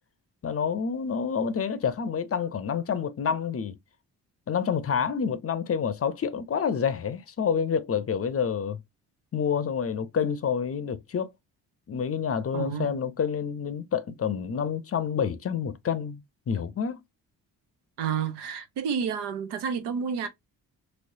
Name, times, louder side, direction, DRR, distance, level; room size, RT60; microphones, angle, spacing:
voice 1, 0.4-3.7 4.5-8.8 9.3-11.3 11.9-17.0, left 7 dB, 35° left, 0.6 m, -28 dB
voice 2, 12.5-13.0 18.0-20.3, right 7 dB, 85° right, 0.8 m, -30 dB
3.1 x 3.0 x 2.6 m
supercardioid pair, 60°, 40 cm